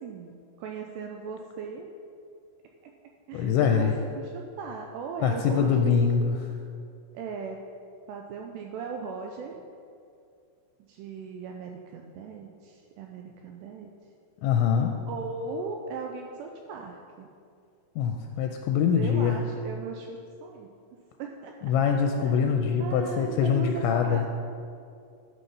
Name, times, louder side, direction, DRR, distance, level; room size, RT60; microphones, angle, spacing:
voice 1, 0.0-1.9 3.3-3.9 4.2-5.9 7.1-7.7 8.1-9.6 10.9-13.9 15.1-17.3 18.9-20.7 21.2-21.5 22.2-24.2, right 4 dB, 85° right, 2 dB, 2.4 m, -38 dB
voice 2, 3.3-3.9 5.2-6.5 14.4-15.0 18.0-19.4 21.6-24.3, left 7 dB, 85° left, 4 dB, 2.8 m, -24 dB
11.5 x 6.0 x 5.4 m, 2.4 s
omnidirectional pair, 5.5 m